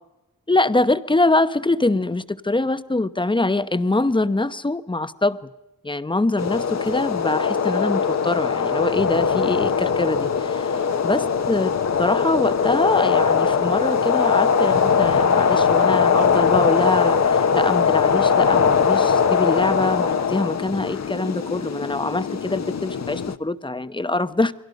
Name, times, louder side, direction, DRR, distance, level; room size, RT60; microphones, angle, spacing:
voice 1, 0.5-5.5 5.8-10.8 11.0-11.7 12.0-24.5, left 2 dB, 15° left, 0.9 m, -23 dB
sound 1, 6.4-23.3, left 6 dB, 55° left, 1.1 m, -21 dB
29.5 x 22.5 x 5.3 m
wide cardioid pair, 105°, 32 cm